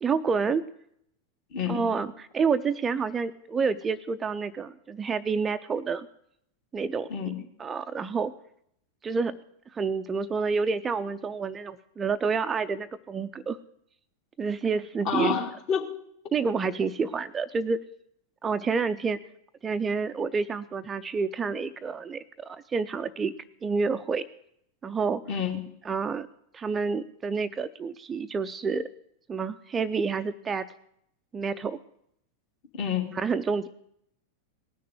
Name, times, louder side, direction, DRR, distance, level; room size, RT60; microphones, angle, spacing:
voice 1, 0.0-0.6 1.7-6.1 6.7-7.1 7.6-8.3 9.0-9.4 9.7-13.6 14.4-15.4 16.3-17.8 18.4-19.2 19.6-23.3 23.6-24.2 24.8-25.2 25.8-26.3 26.5-28.9 29.3-30.7 31.3-31.8 33.1-33.7, right 5 dB, 20° right, 10 dB, 0.5 m, -28 dB
voice 2, 1.5-1.8 7.1-7.3 15.1-15.9 25.3-25.6 32.7-33.2, left 7 dB, 45° left, 2 dB, 2.5 m, -28 dB
18.5 x 6.6 x 9.3 m, 0.71 s
figure-of-eight pair, 90°, 0 cm